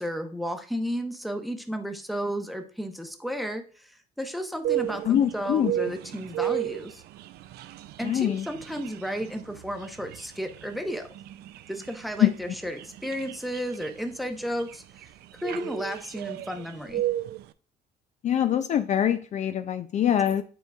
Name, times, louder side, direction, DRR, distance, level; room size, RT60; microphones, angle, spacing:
voice 1, 0.0-7.0 8.0-11.1 11.7-14.8 15.4-17.1, equal, ahead, 5 dB, 0.8 m, -33 dB
sound 1, 4.6-17.5, right 12 dB, 70° right, 0.4 m, -35 dB
voice 2, 5.1-5.7 8.0-8.5 12.2-12.3 18.2-20.4, left 10 dB, 45° left, 9 dB, 0.4 m, -24 dB
9.1 x 4.6 x 2.3 m, 0.41 s
cardioid pair, 110°, 17 cm